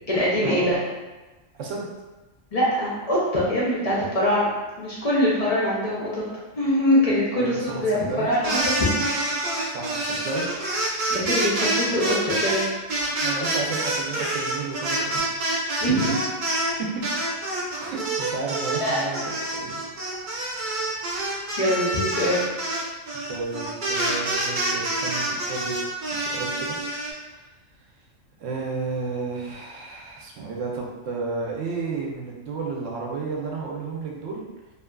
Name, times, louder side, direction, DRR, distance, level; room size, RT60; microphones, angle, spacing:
voice 1, 0.1-0.8 2.5-4.5 4.8-6.2 6.5-9.0 11.1-12.6 15.8-16.2 18.8-19.0 21.6-22.4, equal, 50° left, -6 dB, 0.4 m, -23 dB
voice 2, 1.5-1.9 7.3-8.3 9.6-10.5 13.2-15.3 16.8-17.0 17.8-19.2 19.5-19.8 23.3-25.7 26.1-26.7 28.4-34.5, right 4 dB, 75° right, -2 dB, 0.9 m, -32 dB
sound 1, 8.3-16.7 17.0-27.1, right 1 dB, 50° right, 0.6 m, -27 dB
2.7 x 2.4 x 2.2 m, 1.2 s
omnidirectional pair, 1.3 m